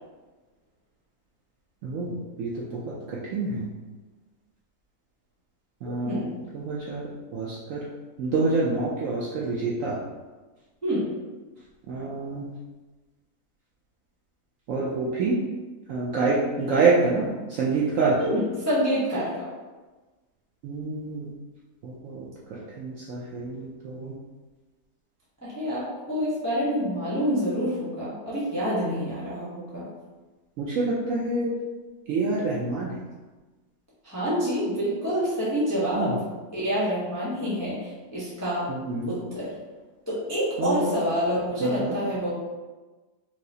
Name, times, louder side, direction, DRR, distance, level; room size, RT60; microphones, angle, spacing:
voice 1, 1.8-3.7 5.8-6.3 6.5-7.8 8.2-10.0 11.9-12.5 14.7-15.4 15.9-18.3 20.6-21.3 21.8-24.1 30.6-31.5 32.1-32.9 35.9-36.2 38.7-39.2 40.6-40.8 41.6-41.9, right 3 dB, 70° right, -5 dB, 0.8 m, -27 dB
voice 2, 5.8-6.3 10.8-11.1 18.2-19.5 25.4-29.9 34.0-36.2 36.5-38.6 39.1-39.5 40.1-42.3, equal, 15° left, -9 dB, 0.5 m, -27 dB
4.7 x 2.0 x 2.7 m, 1.2 s
omnidirectional pair, 1.7 m